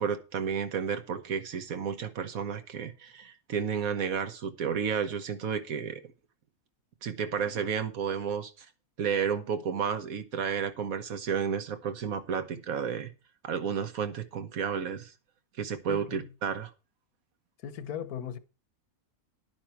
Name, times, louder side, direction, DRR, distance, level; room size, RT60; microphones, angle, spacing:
voice 1, 0.0-6.0 7.0-8.7 9.0-13.1 13.4-15.1 15.6-16.7, right 7 dB, 70° right, 1.5 m, -32 dB
voice 2, 15.9-16.3 17.6-18.4, left 8 dB, 80° left, 1.5 m, -38 dB
11.0 x 9.2 x 4.5 m
omnidirectional pair, 1.6 m